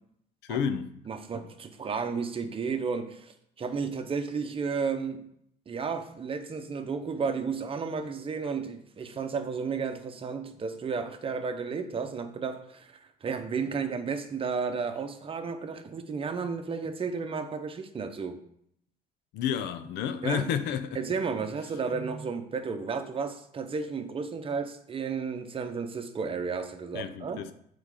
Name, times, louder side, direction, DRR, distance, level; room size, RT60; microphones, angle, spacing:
voice 1, 0.4-0.9 19.3-21.0 26.9-27.5, left 8 dB, 85° left, 0.6 m, -30 dB
voice 2, 1.1-5.3 5.7-18.4 20.2-20.5 20.9-27.4, right 5 dB, 35° right, 0.8 m, -33 dB
7.2 x 4.1 x 4.9 m
cardioid pair, 110°, 17 cm